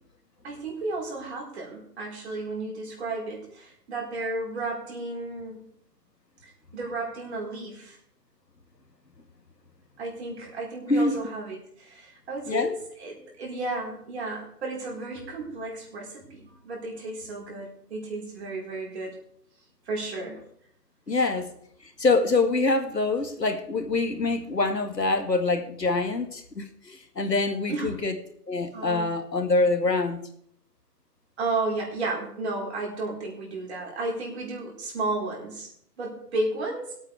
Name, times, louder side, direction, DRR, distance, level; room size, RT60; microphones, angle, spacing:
voice 1, 0.4-5.6 6.4-8.0 10.0-19.2 19.9-20.4 21.1-21.3 27.7-27.9 28.7-29.2 31.4-35.7 36.0-36.9, right 2 dB, 40° right, -2 dB, 4.5 m, -33 dB
voice 2, 21.1-21.5 21.8-28.2 28.5-30.2, left 3 dB, 85° left, 7 dB, 2.0 m, -25 dB
21.5 x 8.8 x 3.5 m, 0.68 s
figure-of-eight pair, 145°, 49 cm